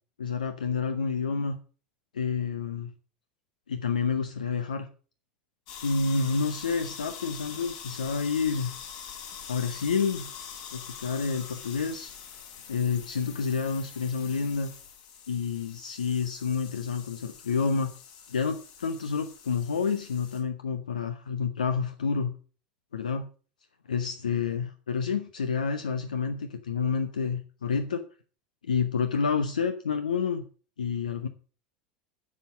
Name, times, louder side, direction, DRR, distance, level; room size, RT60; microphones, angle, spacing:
voice 1, 0.2-1.6 2.1-2.9 3.7-4.9 5.8-8.7 9.5-10.3 10.7-12.1 12.7-14.7 15.3-17.9 18.3-22.3 22.9-23.3 23.9-28.0 28.6-30.4 30.8-31.3, left 5 dB, 75° left, 8 dB, 1.0 m, -29 dB
sound 1, 5.7-20.4, left 7 dB, 55° left, 3.5 m, -44 dB
11.0 x 7.4 x 7.1 m, 0.38 s
figure-of-eight pair, 75°, 4 cm